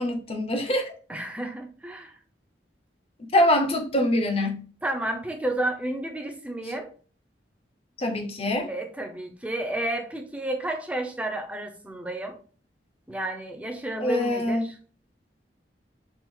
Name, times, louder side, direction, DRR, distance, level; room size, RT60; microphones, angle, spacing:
voice 1, 0.0-0.9 3.3-4.6 8.0-8.7 14.0-14.6, left 1 dB, 30° left, 0.8 m, -24 dB
voice 2, 1.1-2.2 4.8-6.9 8.7-12.4 13.1-14.7, right 1 dB, 5° right, 0.6 m, -31 dB
4.5 x 2.4 x 3.7 m
head